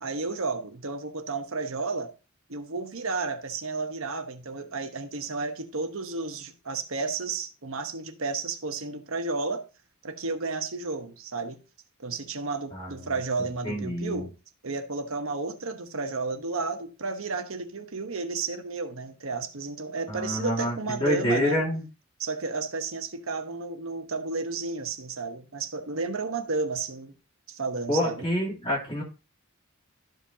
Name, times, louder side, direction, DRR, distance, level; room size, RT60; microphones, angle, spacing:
voice 1, 0.0-2.1 2.5-9.6 10.0-11.6 12.0-14.3 14.6-21.6 22.2-27.1 27.5-28.3, right 3 dB, 65° right, 1.1 m, -32 dB
voice 2, 13.6-14.2 20.1-21.8 27.9-29.0, equal, 20° left, 2.9 m, -27 dB
13.0 x 5.1 x 2.8 m
head